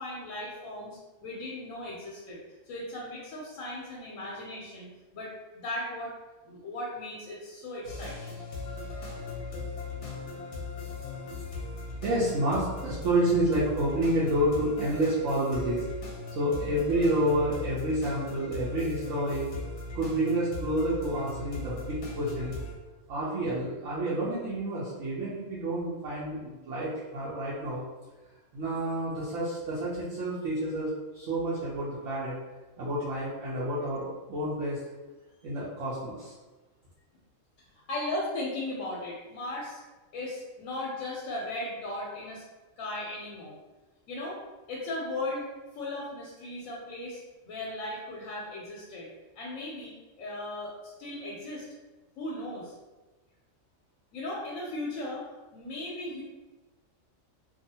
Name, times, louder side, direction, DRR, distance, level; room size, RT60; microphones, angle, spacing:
voice 1, 0.0-2.4 2.7-6.1 6.4-8.1 37.9-39.8 40.1-42.4 42.8-43.6 44.1-44.4 44.7-45.5 45.7-49.1 49.4-51.6 52.2-52.7 54.1-55.2 55.5-56.2, left 1 dB, 90° left, -4 dB, 1.0 m, -37 dB
sound 1, 7.8-22.7, left 3 dB, 55° left, 0.8 m, -38 dB
voice 2, 12.0-15.8 16.3-19.5 19.9-22.5 23.1-27.8 28.5-32.4 32.8-34.8 35.4-36.3, right 1 dB, 70° right, -9 dB, 1.0 m, -29 dB
2.6 x 2.3 x 2.7 m, 1.2 s
omnidirectional pair, 1.4 m